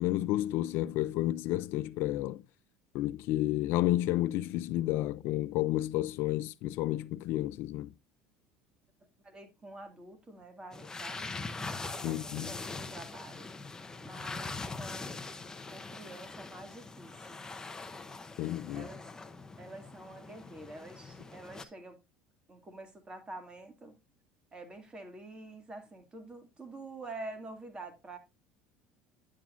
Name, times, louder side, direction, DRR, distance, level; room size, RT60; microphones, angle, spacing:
voice 1, 0.0-2.4 2.9-7.9 12.0-12.5 18.4-18.9, left 15 dB, 65° left, 0.4 m, -31 dB
voice 2, 9.2-13.5 14.0-15.1 15.7-17.4 18.7-19.1 19.6-22.0 22.5-24.0 24.5-28.2, right 2 dB, 20° right, 2.2 m, -47 dB
sound 1, 10.7-21.6, left 3 dB, 15° left, 0.8 m, -42 dB
10.0 x 7.5 x 2.5 m
supercardioid pair, 90°, 4 cm